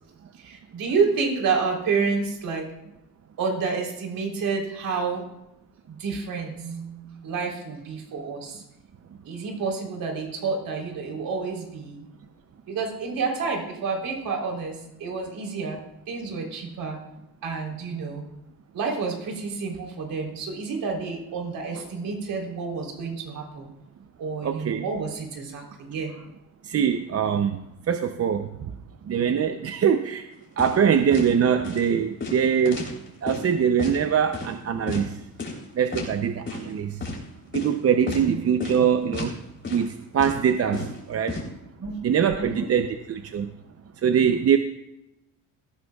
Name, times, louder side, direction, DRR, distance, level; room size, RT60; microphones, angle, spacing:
voice 1, 0.4-2.6 3.4-5.2 5.9-8.6 9.2-12.1 12.7-15.8 16.1-17.0 17.4-18.2 18.7-23.7 24.2-26.2 38.1-38.4 41.8-42.0 42.3-42.7, right 5 dB, 65° right, 1 dB, 3.7 m, -29 dB
voice 2, 24.4-24.9 26.6-27.6 27.9-28.7 29.1-30.2 30.6-32.9 33.2-35.1 35.8-37.0 37.5-39.3 39.7-41.4 42.0-43.5 44.0-44.6, right 7 dB, 40° right, 7 dB, 0.7 m, -23 dB
sound 1, 30.6-30.8 31.1-31.3 31.6-31.8 32.2-33.4 33.8-34.0 34.3-34.5 34.9-35.0 35.4-35.6 35.9-36.1 36.5-36.7 37.0-37.2 37.5-37.7 38.1-38.3 38.6-38.8 39.1-39.4 39.6-39.9 40.2-41.4, left 3 dB, 30° left, 3.6 m, -32 dB
18.0 x 14.0 x 2.4 m, 0.88 s
cardioid pair, 130°, 38 cm